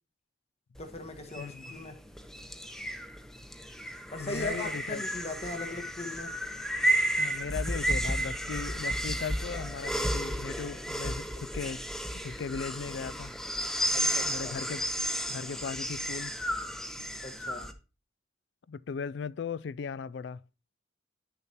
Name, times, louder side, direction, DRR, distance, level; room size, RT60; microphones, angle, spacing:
voice 1, 0.8-2.0 4.1-6.3 13.9-14.5 17.2-17.7, left 2 dB, 35° left, 1.3 m, -39 dB
sound 1, 0.8-17.7, right 1 dB, 5° left, 0.7 m, -33 dB
voice 2, 1.4-1.7 4.2-5.0 7.2-11.8 12.2-13.3 14.0-16.4 18.7-20.4, left 5 dB, 65° left, 0.3 m, -38 dB
10.5 x 6.8 x 2.9 m
head